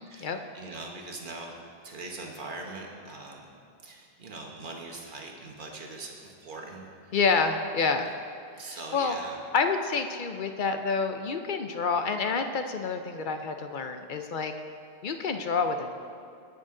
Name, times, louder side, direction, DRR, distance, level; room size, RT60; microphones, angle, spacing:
voice 1, 0.0-1.5 1.8-3.4 3.8-7.2 8.6-9.4, right 3 dB, 55° right, 1 dB, 1.4 m, -41 dB
voice 2, 7.1-8.1 8.7-9.2 9.5-14.5 15.0-15.9, left 4 dB, 55° left, 6 dB, 0.7 m, -28 dB
16.5 x 6.4 x 3.8 m, 2.5 s
omnidirectional pair, 1.0 m